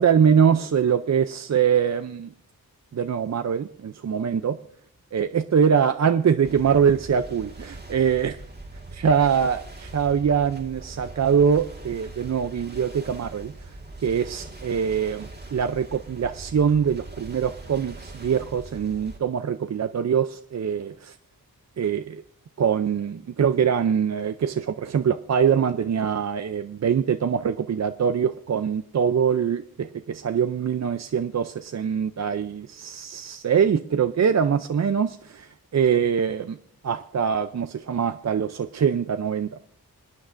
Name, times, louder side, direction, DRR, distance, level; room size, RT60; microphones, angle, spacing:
voice 1, 0.0-2.3 2.9-4.6 5.1-8.4 8.9-13.5 14.0-21.1 21.8-22.2 22.6-36.6 36.8-39.5, right 7 dB, 50° right, 9 dB, 0.5 m, -23 dB
sound 1, 6.4-19.2, right 2 dB, 30° right, 1.7 m, -41 dB
27.5 x 9.5 x 2.5 m, 0.62 s
wide cardioid pair, 130°, 36 cm